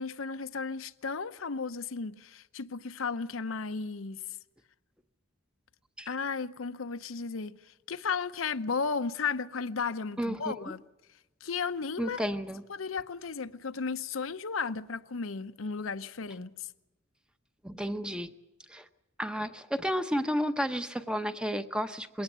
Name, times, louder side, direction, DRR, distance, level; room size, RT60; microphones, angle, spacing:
voice 1, 0.0-4.2 6.1-7.6 7.9-10.8 11.4-12.2 12.7-16.7, left 5 dB, 85° left, 0.7 m, -34 dB
voice 2, 10.2-10.7 12.0-12.6 17.6-18.3 18.7-18.9 19.2-22.2, equal, 5° right, 0.7 m, -32 dB
21.5 x 17.5 x 8.0 m
head